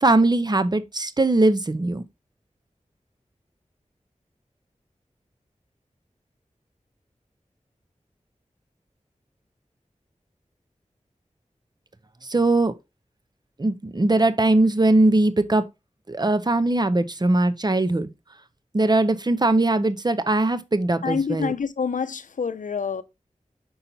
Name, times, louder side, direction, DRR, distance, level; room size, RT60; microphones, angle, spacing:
voice 1, 0.0-2.0 12.2-12.7 13.6-15.6 16.1-18.1 18.7-21.5, right 2 dB, 35° right, 0.7 m, -20 dB
voice 2, 21.0-23.0, left 6 dB, 85° left, 0.5 m, -27 dB
5.5 x 4.3 x 3.9 m
wide cardioid pair, 45°, 13 cm